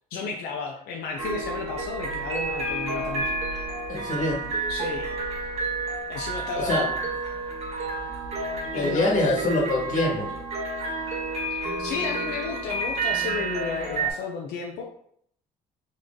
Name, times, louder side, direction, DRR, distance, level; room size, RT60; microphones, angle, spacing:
voice 1, 0.1-3.6 4.7-5.1 6.1-6.9 8.7-9.1 11.5-14.8, left 5 dB, 80° left, 0 dB, 0.6 m, -33 dB
sound 1, 1.2-14.1, right 2 dB, 40° right, 1.8 m, -30 dB
voice 2, 3.9-4.4 6.5-6.9 8.7-10.3, left 2 dB, 50° left, 0 dB, 1.4 m, -24 dB
4.0 x 3.1 x 3.7 m, 0.66 s
cardioid pair, 110°, 17 cm